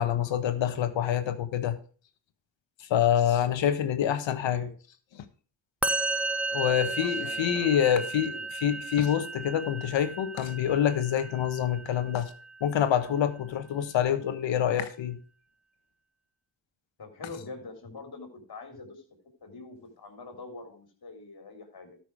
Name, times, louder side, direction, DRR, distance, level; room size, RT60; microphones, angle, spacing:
voice 1, 0.0-1.8 2.8-4.7 5.1-5.2 6.5-12.3 12.6-15.2, left 10 dB, 85° left, 1.3 m, -26 dB
Musical instrument, 5.8-13.1, right 3 dB, 5° right, 0.8 m, -34 dB
voice 2, 6.5-8.0 8.3-8.5 17.0-19.0 19.4-22.0, left 3 dB, 55° left, 3.6 m, -45 dB
13.0 x 6.1 x 4.8 m
cardioid pair, 55°, 44 cm